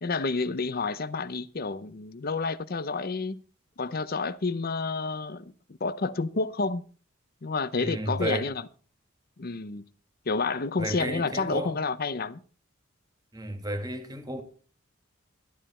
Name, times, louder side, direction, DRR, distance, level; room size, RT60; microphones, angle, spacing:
voice 1, 0.0-3.4 3.8-5.4 5.8-6.8 7.4-8.7 9.4-9.8 10.3-12.4, left 4 dB, 45° left, 0.7 m, -29 dB
voice 2, 7.8-8.5 10.8-11.7 13.3-14.4, right 1 dB, 20° right, 2.0 m, -33 dB
13.0 x 11.5 x 4.3 m
head